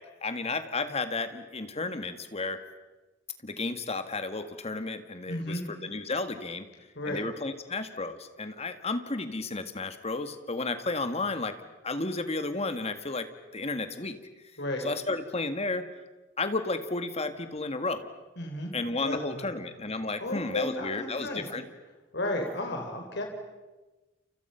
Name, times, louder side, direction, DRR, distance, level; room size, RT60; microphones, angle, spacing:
voice 1, 0.0-2.6 3.4-6.7 7.1-11.6 11.8-13.3 13.5-14.2 14.8-15.9 16.4-18.1 18.7-21.7, left 3 dB, 35° left, 9 dB, 1.8 m, -32 dB
voice 2, 5.3-5.6 7.0-7.2 14.6-14.8 18.4-18.7 19.0-19.5 20.2-21.5 22.1-23.2, left 1 dB, 60° left, 3 dB, 4.3 m, -33 dB
29.5 x 29.5 x 5.8 m, 1.2 s
head